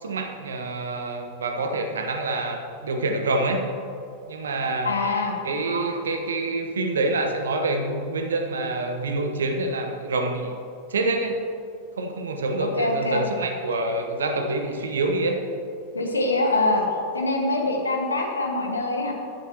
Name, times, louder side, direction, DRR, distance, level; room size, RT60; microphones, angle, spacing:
voice 1, 0.0-3.7 4.3-4.9 5.4-10.5 10.9-11.5 12.0-15.4, right 2 dB, 65° right, 5 dB, 1.1 m, -26 dB
voice 2, 4.8-5.3 12.6-13.2 15.9-16.9 17.1-19.1, left 2 dB, 75° left, 2 dB, 1.5 m, -24 dB
14.5 x 11.0 x 2.9 m, 2.5 s
figure-of-eight pair, 90°, 0 cm